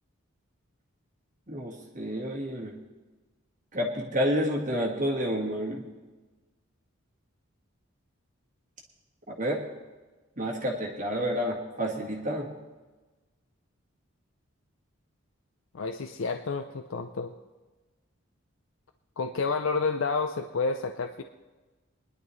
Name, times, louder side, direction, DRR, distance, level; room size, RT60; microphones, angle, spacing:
voice 1, 1.5-2.7 3.7-5.9 9.3-9.6 10.4-12.5, equal, 35° right, -1 dB, 1.6 m, -29 dB
voice 2, 15.7-17.3 19.2-21.2, left 4 dB, 65° left, 6 dB, 0.5 m, -30 dB
21.0 x 11.0 x 3.2 m, 1.2 s
head